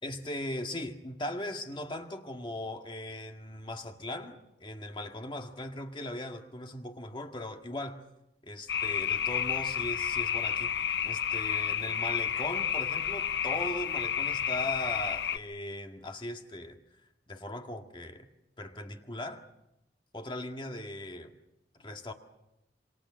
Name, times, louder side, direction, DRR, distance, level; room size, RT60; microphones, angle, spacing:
voice 1, 0.0-8.0 8.4-10.7 11.0-16.8 17.3-18.3 18.6-19.4 20.1-21.3 21.7-22.1, left 1 dB, 25° left, 1.9 m, -39 dB
sound 1, 8.7-15.4, left 8 dB, 70° left, 0.8 m, -31 dB
27.5 x 24.5 x 6.3 m
head